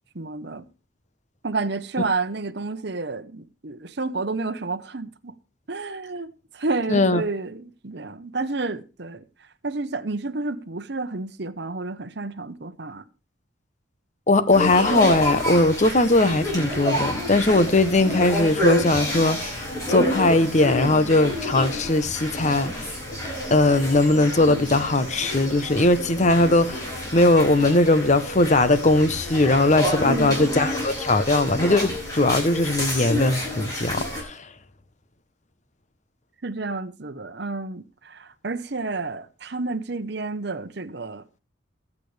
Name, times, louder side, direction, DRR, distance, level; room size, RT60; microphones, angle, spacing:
voice 1, 0.1-0.6 1.4-5.3 5.7-6.3 6.5-9.2 9.6-13.0 30.0-30.5 36.4-41.2, right 3 dB, 55° right, 1.0 m, -30 dB
voice 2, 6.9-7.2 14.3-19.6 19.9-22.8 23.5-34.4, left 2 dB, 35° left, 0.9 m, -20 dB
sound 1, 14.5-34.2, left 1 dB, 20° left, 6.1 m, -29 dB
20.5 x 8.5 x 3.4 m
head